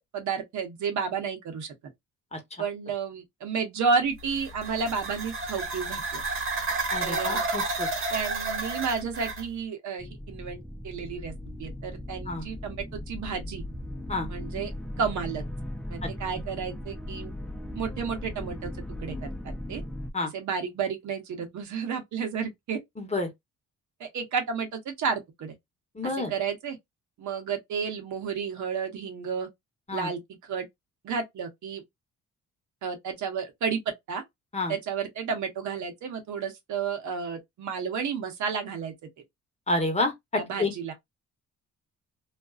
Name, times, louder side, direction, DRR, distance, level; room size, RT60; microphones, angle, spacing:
voice 1, 0.0-1.7 2.6-6.2 7.0-7.4 8.1-11.3 11.6-13.6 14.3-14.7 15.0-15.4 15.9-17.3 17.7-18.7 19.0-19.3 19.7-19.8 20.3-22.8 24.0-25.5 26.0-26.8 27.2-29.5 29.9-30.2 30.5-30.7 31.0-31.8 32.8-33.8 34.1-34.2 34.7-38.9 40.4-40.9, right 6 dB, 70° right, 0.9 m, -31 dB
voice 2, 2.3-2.6 6.9-7.9 12.3-12.5 14.1-14.3 16.0-16.1 20.1-20.3 23.0-23.3 25.9-26.3 29.9-30.1 34.5-34.7 39.7-40.9, left 2 dB, 20° left, 0.9 m, -29 dB
sound 1, 4.2-9.5, right 3 dB, 45° right, 1.1 m, -31 dB
sound 2, 10.0-20.1, left 1 dB, 5° left, 0.4 m, -38 dB
2.4 x 2.2 x 2.3 m
cardioid pair, 90°, 30 cm